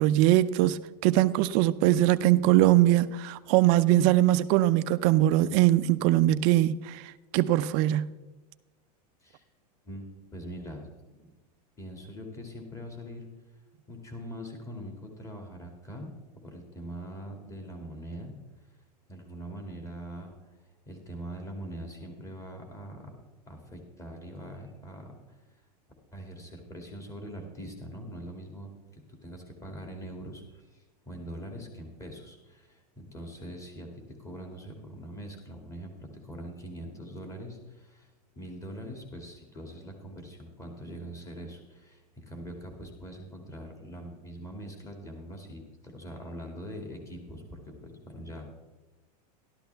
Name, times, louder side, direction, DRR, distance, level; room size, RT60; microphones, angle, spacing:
voice 1, 0.0-7.0 7.3-8.1, right 14 dB, 50° right, 0.5 m, -22 dB
voice 2, 9.8-10.9 11.1-11.3 11.8-13.3 13.9-16.1 16.4-18.3 19.1-20.5 20.9-23.1 23.5-25.1 26.1-38.1 38.4-48.5, equal, 15° left, 2.3 m, -42 dB
12.5 x 12.5 x 3.4 m
supercardioid pair, 130°, 21 cm